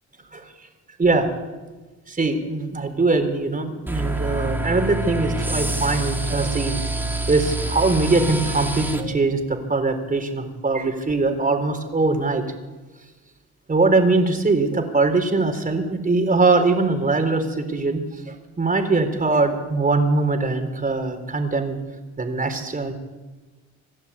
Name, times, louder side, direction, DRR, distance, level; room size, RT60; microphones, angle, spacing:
voice 1, 2.1-12.4 13.7-21.8 22.2-22.9, right 3 dB, 30° right, 6 dB, 4.1 m, -22 dB
sound 1, 3.9-9.0, right 1 dB, 5° right, 3.0 m, -26 dB
27.0 x 12.0 x 8.5 m, 1.2 s
cardioid pair, 90°, 30 cm